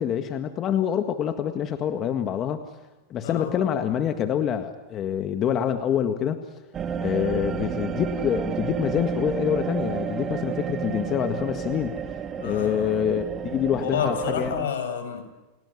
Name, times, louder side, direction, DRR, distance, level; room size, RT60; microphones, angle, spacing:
voice 1, 0.0-2.6 3.1-6.4 7.0-12.0 12.4-14.6, left 9 dB, 35° left, 7 dB, 1.8 m, -26 dB
sound 1, 6.7-14.6, right 7 dB, 30° right, 1.9 m, -31 dB
voice 2, 12.4-13.0 13.8-15.2, left 7 dB, 80° left, 8 dB, 6.2 m, -30 dB
29.5 x 18.5 x 9.8 m, 1.1 s
hypercardioid pair, 120°, 0 cm